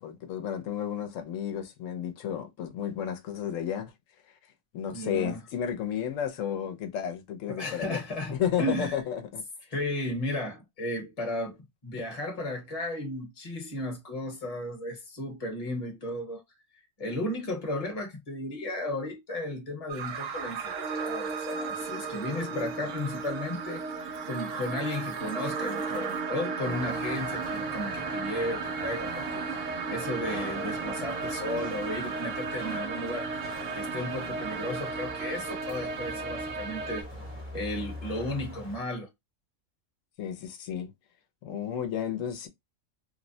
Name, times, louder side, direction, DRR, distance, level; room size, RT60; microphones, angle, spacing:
voice 1, 0.0-3.9 4.7-8.0 8.3-9.4 22.4-22.6 40.2-40.9 41.4-42.5, left 9 dB, 85° left, 1.0 m, -32 dB
voice 2, 4.9-5.4 7.5-8.9 9.7-11.6 11.8-16.4 17.0-23.8 24.2-33.3 33.7-37.1 37.5-39.1, left 1 dB, 30° left, 0.9 m, -34 dB
sound 1, 19.9-37.0, right 4 dB, 90° right, 1.0 m, -34 dB
sound 2, 26.6-38.8, equal, 10° right, 0.7 m, -43 dB
3.1 x 2.0 x 2.6 m
omnidirectional pair, 1.3 m